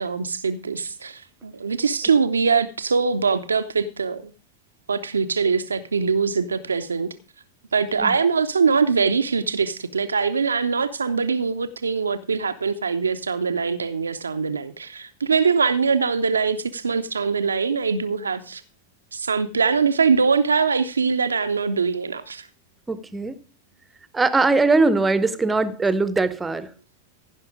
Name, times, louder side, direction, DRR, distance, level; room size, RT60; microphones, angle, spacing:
voice 1, 0.0-4.3 4.9-7.1 7.7-18.6 19.1-22.5, right 5 dB, 75° right, 0.6 m, -22 dB
voice 2, 22.9-23.4 24.1-26.7, right 3 dB, 10° right, 0.9 m, -21 dB
15.5 x 5.9 x 4.9 m
figure-of-eight pair, 90°, 0 cm